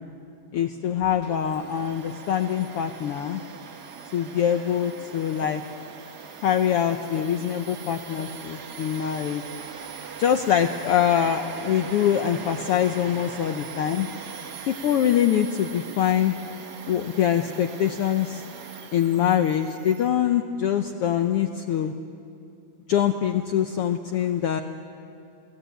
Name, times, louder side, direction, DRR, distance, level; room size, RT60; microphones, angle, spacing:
voice 1, 0.5-3.4 4.1-5.6 6.4-9.4 10.2-14.1 14.7-16.4 16.9-18.4 18.9-21.9 22.9-24.6, left 9 dB, 85° left, 7 dB, 1.3 m, -24 dB
Domestic sounds home sounds, 1.2-20.1, right 6 dB, 70° right, 0.9 m, -41 dB
29.0 x 19.0 x 9.2 m, 2.7 s
omnidirectional pair, 3.6 m